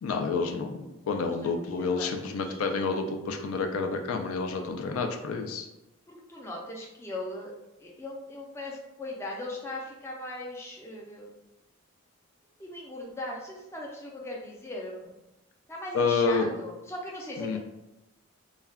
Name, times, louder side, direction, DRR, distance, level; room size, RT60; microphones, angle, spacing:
voice 1, 0.0-5.7 15.9-16.5 17.4-17.6, left 4 dB, 80° left, 5 dB, 0.3 m, -29 dB
voice 2, 1.0-2.6 4.6-5.0 6.1-7.5 7.8-11.3 12.6-15.1 15.7-17.6, left 1 dB, 10° left, -2 dB, 0.4 m, -39 dB
2.2 x 2.2 x 3.3 m, 0.96 s
head